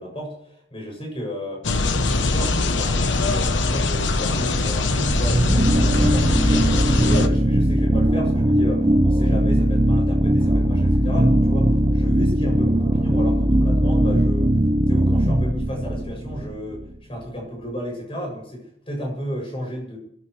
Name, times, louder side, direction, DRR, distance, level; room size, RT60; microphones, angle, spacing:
voice 1, 0.0-1.6 2.0-6.7 7.0-14.5 14.9-20.0, equal, 30° left, -1 dB, 7.5 m, -32 dB
sound 1, 1.6-7.3, left 3 dB, 80° left, 1.1 m, -22 dB
sound 2, 5.1-16.9, right 1 dB, 30° right, 0.8 m, -19 dB
28.0 x 14.5 x 3.3 m, 0.69 s
head